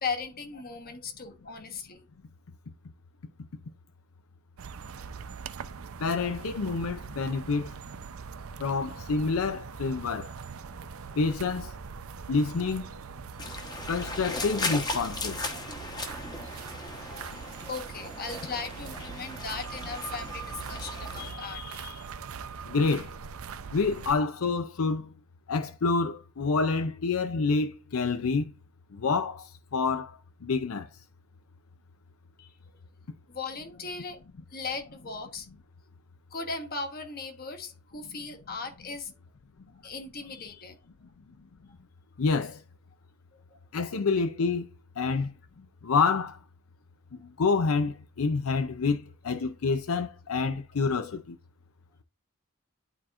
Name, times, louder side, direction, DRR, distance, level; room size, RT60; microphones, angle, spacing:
voice 1, 0.0-2.0 17.1-22.1 32.4-32.5 33.3-34.2 34.5-35.5 36.3-39.1 39.8-40.8, left 4 dB, 45° left, 1.2 m, -38 dB
sound 1, 4.6-24.1, right 6 dB, 75° right, 0.5 m, -41 dB
voice 2, 6.0-7.7 8.6-10.3 11.2-11.7 12.3-12.9 13.9-15.4 22.7-23.1 23.7-25.1 25.5-28.5 28.9-30.9 42.2-42.6 43.7-44.7 45.0-45.3 45.8-46.4 47.4-51.4, left 4 dB, 80° left, 0.5 m, -27 dB
sound 2, 13.4-21.3, left 2 dB, 20° left, 1.0 m, -37 dB
11.0 x 4.3 x 2.5 m
head